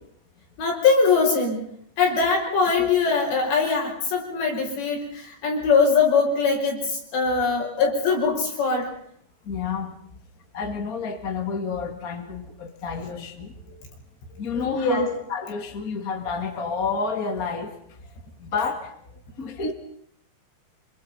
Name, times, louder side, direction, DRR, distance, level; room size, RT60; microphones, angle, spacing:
voice 1, 0.6-1.7 2.0-8.9 14.5-15.1, left 4 dB, 75° left, 1 dB, 7.7 m, -22 dB
voice 2, 9.4-10.0 10.5-13.6 14.4-18.0 18.4-18.9 19.4-19.7, left 5 dB, 30° left, 5 dB, 1.9 m, -30 dB
26.5 x 25.0 x 5.7 m, 0.66 s
omnidirectional pair, 5.1 m